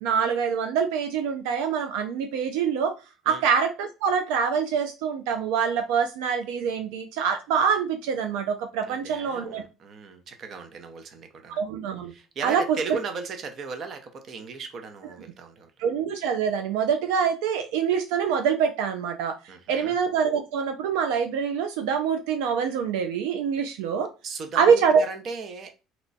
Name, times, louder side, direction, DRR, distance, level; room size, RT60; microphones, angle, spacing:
voice 1, 0.0-2.9 3.3-9.6 11.5-12.1 12.4-12.8 15.8-19.4 19.7-24.1 24.6-25.0, right 6 dB, 90° right, 0.4 m, -25 dB
voice 2, 8.8-11.6 12.1-15.7 19.5-20.0 24.2-25.8, right 4 dB, 45° right, 0.7 m, -37 dB
3.0 x 2.2 x 4.0 m
cardioid pair, 110°, 0 cm